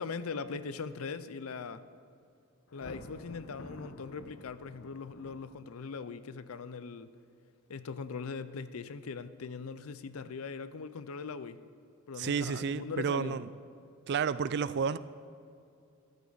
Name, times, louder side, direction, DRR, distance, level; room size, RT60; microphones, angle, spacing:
voice 1, 0.0-1.8 2.7-7.1 7.7-11.6 12.1-13.4, left 5 dB, 90° left, 14 dB, 0.5 m, -40 dB
Thunder, 2.7-6.0, left 1 dB, 60° left, 0.9 m, -50 dB
voice 2, 12.2-13.5 14.1-15.0, right 6 dB, 55° right, 16 dB, 0.4 m, -31 dB
14.0 x 12.0 x 4.0 m, 2.5 s
head